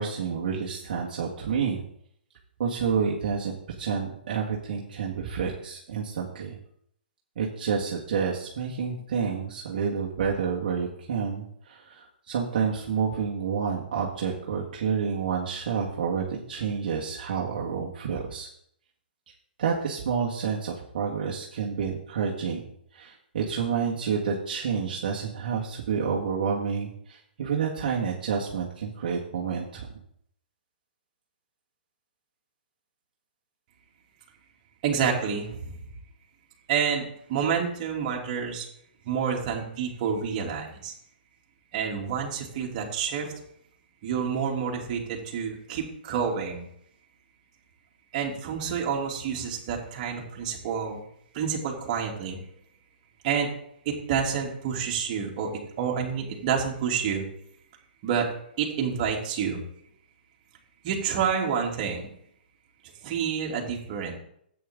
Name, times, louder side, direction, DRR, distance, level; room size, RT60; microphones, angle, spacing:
voice 1, 0.0-1.8 2.6-6.6 7.4-18.5 19.6-22.6 22.9-29.9, right 6 dB, 55° right, -3 dB, 1.8 m, -29 dB
voice 2, 34.8-35.8 36.7-38.7 39.0-40.9 41.7-43.3 44.0-46.7 48.1-51.1 51.3-52.4 53.2-53.5 53.8-55.5 55.8-57.2 58.0-58.3 58.6-59.6 60.8-62.1 63.0-64.1, right 7 dB, 40° right, -1 dB, 2.9 m, -28 dB
12.5 x 8.8 x 3.8 m, 0.70 s
hypercardioid pair, 140°, 6 cm